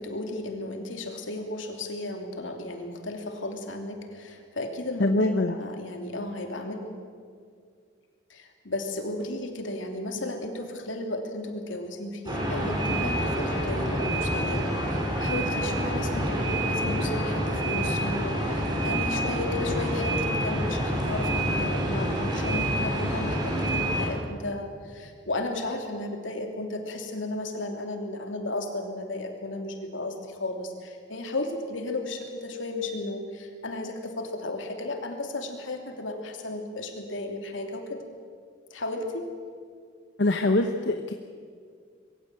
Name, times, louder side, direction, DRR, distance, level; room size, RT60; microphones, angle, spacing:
voice 1, 0.0-5.1 5.4-6.8 8.3-38.0 38.7-39.3, left 2 dB, 90° left, 4 dB, 2.9 m, -34 dB
voice 2, 5.0-5.5 40.2-41.1, left 2 dB, 70° left, 6 dB, 1.0 m, -23 dB
sound 1, 12.3-24.1, right 1 dB, 20° right, 5.4 m, -27 dB
22.0 x 16.0 x 9.0 m, 2.1 s
head